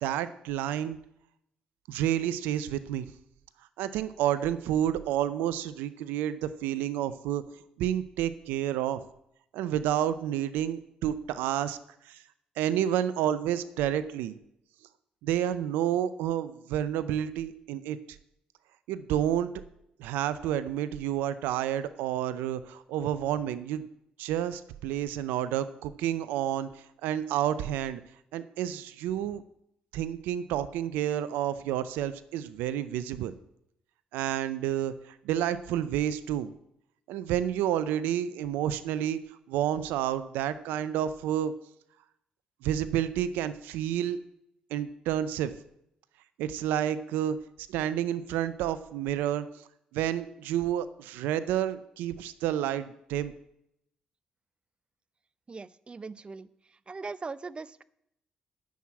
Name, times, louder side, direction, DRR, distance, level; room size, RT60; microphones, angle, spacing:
voice 1, 0.0-1.0 1.9-3.1 3.8-7.4 7.8-9.0 9.5-11.8 12.0-12.2 12.6-14.4 15.2-18.0 18.9-19.5 20.0-23.9 24.2-28.0 28.3-29.4 29.9-33.3 34.1-36.5 37.1-39.2 39.5-41.5 42.6-44.2 44.7-45.5 46.4-47.4 47.7-49.5 49.9-53.3, right 11 dB, 90° right, 14 dB, 0.5 m, -30 dB
voice 2, 55.5-56.5 56.9-57.8, right 4 dB, 35° right, 18 dB, 0.6 m, -40 dB
9.3 x 6.3 x 8.4 m, 0.78 s
supercardioid pair, 55°, 3 cm